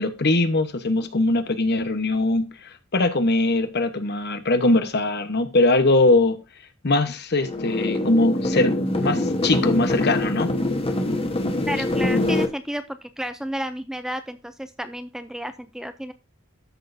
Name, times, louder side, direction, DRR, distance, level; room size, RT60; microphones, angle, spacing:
voice 1, 0.0-6.4 6.8-10.5, left 2 dB, 55° left, 1.1 m, -21 dB
sound 1, 7.4-12.5, left 1 dB, 30° left, 1.1 m, -24 dB
voice 2, 11.7-16.1, equal, 5° right, 0.4 m, -31 dB
12.5 x 6.3 x 2.7 m
head